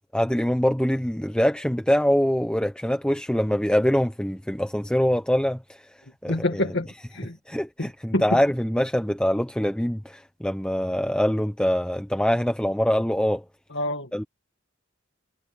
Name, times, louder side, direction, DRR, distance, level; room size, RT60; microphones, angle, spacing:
voice 1, 0.1-5.9 6.2-6.7 7.5-13.4 14.1-14.2, equal, 5° left, 0.9 m, -24 dB
voice 2, 6.3-7.4 7.8-8.4 13.7-14.1, left 1 dB, 60° left, 2.1 m, -27 dB
head